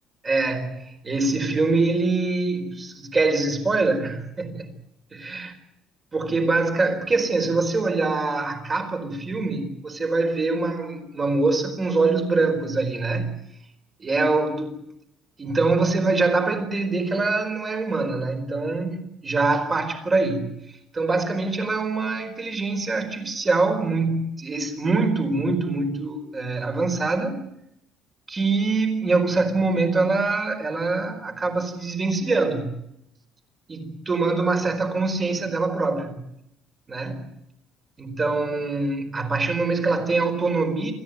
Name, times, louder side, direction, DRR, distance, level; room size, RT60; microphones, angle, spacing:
voice 1, 0.2-4.7 5.1-5.5 6.1-13.3 14.0-14.8 15.4-20.5 20.9-27.4 28.3-32.7 33.7-36.2 36.9-37.2 38.0-40.9, right 3 dB, 20° right, 4.6 m, -24 dB
28.0 x 14.5 x 9.5 m
cardioid pair, 150°, 0 cm